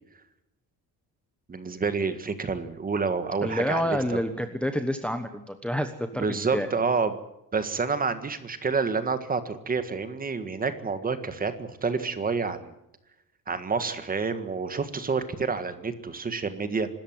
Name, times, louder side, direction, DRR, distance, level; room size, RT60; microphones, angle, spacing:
voice 1, 1.5-4.2 6.2-7.1 7.5-12.7 13.5-16.9, right 4 dB, 25° right, 10 dB, 1.7 m, -28 dB
voice 2, 3.4-6.7, equal, 5° left, 7 dB, 1.1 m, -28 dB
25.5 x 13.5 x 9.4 m, 0.88 s
cardioid pair, 175°, 37 cm